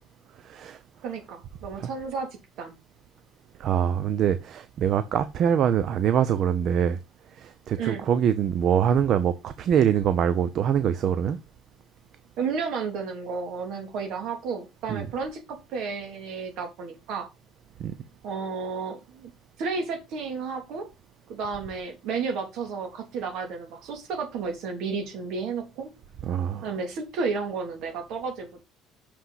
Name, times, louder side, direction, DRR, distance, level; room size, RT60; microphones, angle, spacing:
voice 1, 0.4-0.8 1.8-1.9 3.6-7.0 7.4-11.4 14.9-15.1 17.8-17.9 26.2-26.7, right 8 dB, 40° right, 0.6 m, -24 dB
voice 2, 1.0-2.3 2.6-2.7 7.8-8.1 12.4-15.4 15.7-17.3 18.2-19.3 19.6-20.9 21.3-25.9 26.6-28.6, right 5 dB, 55° right, 2.9 m, -32 dB
6.5 x 5.9 x 5.7 m
cardioid pair, 170°, 0 cm